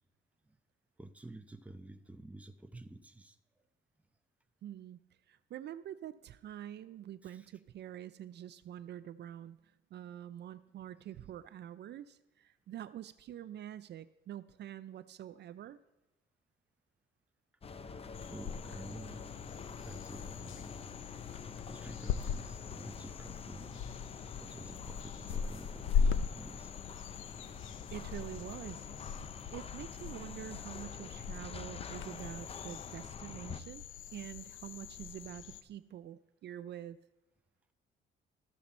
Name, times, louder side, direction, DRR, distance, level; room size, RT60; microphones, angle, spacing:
voice 1, 1.0-3.4 7.2-7.5 17.8-18.0 18.3-19.3 19.8-20.8 21.7-23.8 24.4-26.7, right 2 dB, 5° right, 8 dB, 0.7 m, -50 dB
voice 2, 4.6-5.0 5.3-15.8 27.6-28.9 29.5-33.8 34.1-37.0, right 11 dB, 60° right, 14 dB, 0.4 m, -46 dB
sound 1, 17.6-33.6, left 5 dB, 30° left, 0.6 m, -47 dB
sound 2, 18.1-35.6, left 7 dB, 80° left, 0.5 m, -40 dB
13.5 x 6.8 x 4.2 m, 1.1 s
cardioid pair, 90°, 20 cm